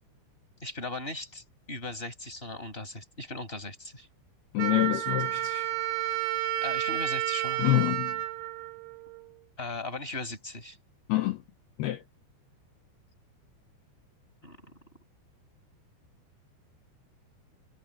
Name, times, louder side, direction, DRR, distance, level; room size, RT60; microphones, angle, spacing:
voice 1, 0.6-4.1 6.6-7.8 9.6-10.8 14.4-14.6, left 2 dB, 10° left, 5.5 m, -38 dB
voice 2, 4.5-5.7 7.6-8.2 11.1-11.4 11.8-12.0, left 16 dB, 80° left, 2.3 m, -27 dB
Wind instrument woodwind instrument, 4.6-9.4, right 14 dB, 75° right, 4.1 m, -31 dB
omnidirectional pair, 5.6 m